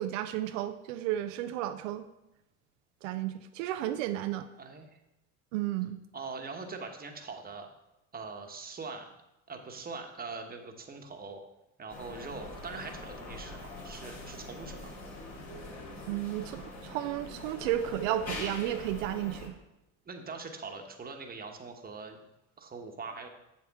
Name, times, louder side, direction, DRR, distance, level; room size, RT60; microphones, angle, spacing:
voice 1, 0.0-2.1 3.0-4.5 5.5-6.0 16.1-19.5, right 13 dB, 85° right, 8 dB, 0.6 m, -33 dB
voice 2, 4.6-5.0 6.1-7.7 8.1-9.1 9.5-11.4 11.8-14.9 20.0-22.2 22.6-23.3, right 4 dB, 25° right, 4 dB, 1.2 m, -42 dB
sound 1, 11.9-19.5, left 2 dB, 45° left, 3.0 m, -43 dB
7.2 x 7.1 x 3.6 m, 0.91 s
supercardioid pair, 85°, 37 cm